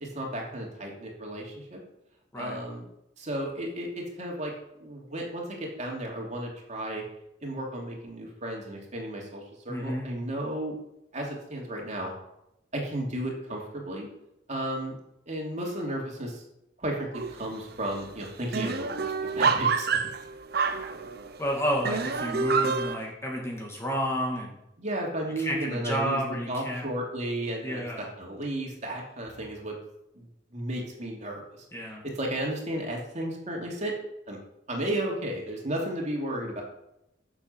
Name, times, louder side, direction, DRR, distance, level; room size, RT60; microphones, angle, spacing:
voice 1, 0.0-1.8 2.4-2.8 3.2-4.5 4.8-7.0 7.4-10.8 11.1-12.1 12.7-14.1 14.5-15.0 15.3-16.4 16.8-20.0 24.8-26.2 26.5-29.8 30.1-31.6 32.0-34.0 34.3-34.4 34.7-36.6, right 1 dB, 40° right, -1 dB, 2.9 m, -33 dB
voice 2, 9.7-10.1 21.4-24.5 25.4-26.8 27.6-28.1 31.7-32.0, equal, 15° left, -1 dB, 2.3 m, -31 dB
sound 1, 17.1-17.6 17.9-18.0 18.2-21.4 21.8-22.9, right 5 dB, 55° right, 0.8 m, -27 dB
13.5 x 7.5 x 5.7 m, 0.83 s
head